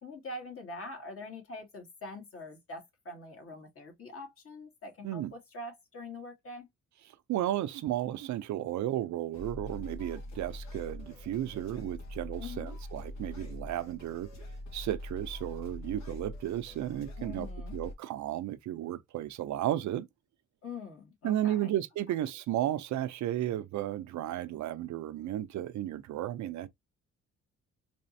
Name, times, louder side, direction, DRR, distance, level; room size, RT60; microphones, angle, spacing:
voice 1, 0.0-6.7 12.4-12.8 17.2-17.8 20.6-21.8, left 2 dB, 45° left, 2.3 m, -44 dB
voice 2, 7.3-14.3 14.7-17.5 17.7-20.1 21.2-26.7, right 12 dB, 70° right, 0.6 m, -34 dB
sound 1, 9.3-17.9, left 1 dB, 65° left, 1.6 m, -43 dB
4.1 x 3.0 x 2.7 m
cardioid pair, 90°, 30 cm